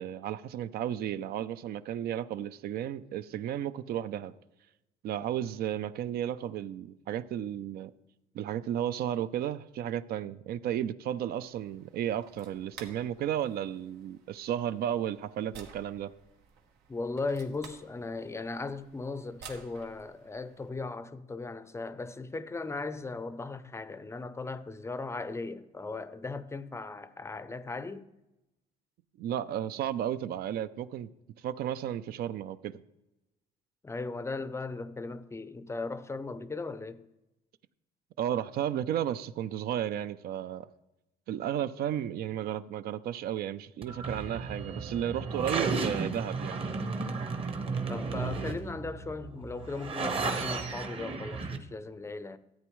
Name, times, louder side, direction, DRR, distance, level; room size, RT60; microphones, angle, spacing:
voice 1, 0.0-4.3 5.0-7.9 8.3-16.1 29.2-31.1 31.4-32.8 38.2-40.7 41.3-46.6, right 10 dB, 65° right, 0.4 m, -33 dB
sound 1, 11.4-20.7, right 6 dB, 90° right, 1.2 m, -54 dB
voice 2, 16.9-28.1 33.8-37.1 47.9-52.4, left 3 dB, 15° left, 0.5 m, -37 dB
sound 2, 43.8-51.6, right 4 dB, 35° right, 1.0 m, -34 dB
13.5 x 8.5 x 3.1 m
cardioid pair, 110°, 17 cm